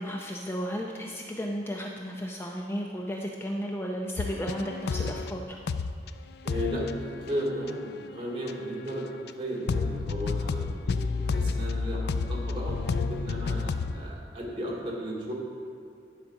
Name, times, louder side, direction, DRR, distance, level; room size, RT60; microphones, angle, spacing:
voice 1, 0.0-5.4, equal, 15° left, 0 dB, 0.5 m, -34 dB
sound 1, 4.2-5.4 5.7-6.1 6.4-8.9 9.3-9.4 9.7-14.1, left 4 dB, 65° left, 0.4 m, -31 dB
voice 2, 6.4-11.0 11.2-15.3, equal, 30° right, -4 dB, 2.4 m, -35 dB
11.5 x 5.1 x 6.2 m, 2.4 s
head